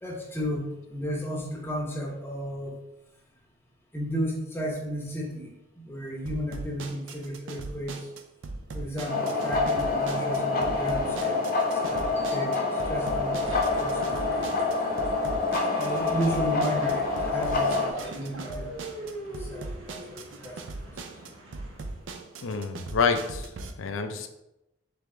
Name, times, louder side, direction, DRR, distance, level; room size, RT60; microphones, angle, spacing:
voice 1, 0.0-2.7 3.9-8.1 8.7-14.7 15.7-20.6, equal, 10° left, -1 dB, 0.7 m, -34 dB
sound 1, 6.3-23.7, right 3 dB, 70° right, 0.4 m, -40 dB
sound 2, 9.1-17.9, left 3 dB, 50° left, 0.7 m, -27 dB
sound 3, 13.4-22.1, right 1 dB, 90° right, 0.9 m, -44 dB
voice 2, 22.4-23.5 23.8-24.3, left 5 dB, 90° left, 8 dB, 0.5 m, -27 dB
3.4 x 3.3 x 3.7 m, 0.90 s
head